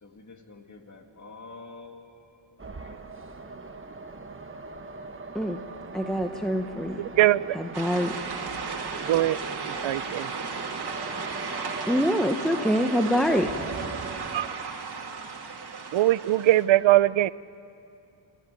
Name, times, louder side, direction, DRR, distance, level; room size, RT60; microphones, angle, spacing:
voice 1, 0.0-3.0 3.3-3.4, left 3 dB, 40° left, 4 dB, 2.1 m, -48 dB
sound 1, 2.6-14.5, right 4 dB, 25° right, 1.1 m, -40 dB
voice 2, 5.9-7.0 7.8-8.1 11.9-13.5, equal, ahead, 5 dB, 1.0 m, -25 dB
voice 3, 7.2-7.6 9.1-9.4 9.7-10.3 14.3-14.6 15.9-17.3, right 15 dB, 75° right, 19 dB, 0.6 m, -21 dB
sound 2, 7.7-16.7, right 5 dB, 55° right, 2.3 m, -35 dB
26.5 x 13.5 x 9.1 m, 2.7 s
cardioid pair, 85°, 46 cm